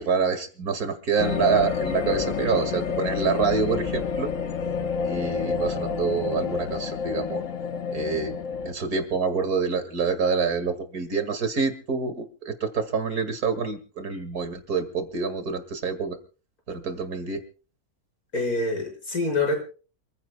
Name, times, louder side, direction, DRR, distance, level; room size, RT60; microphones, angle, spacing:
voice 1, 0.0-4.3 5.0-7.4 7.9-8.4 8.7-16.2 16.7-17.4, right 5 dB, 80° right, 8 dB, 2.6 m, -26 dB
sound 1, 1.2-8.7, left 6 dB, 60° left, 1.5 m, -29 dB
voice 2, 18.3-19.6, left 2 dB, 80° left, 1 dB, 6.0 m, -25 dB
28.0 x 15.5 x 2.3 m, 0.37 s
omnidirectional pair, 1.6 m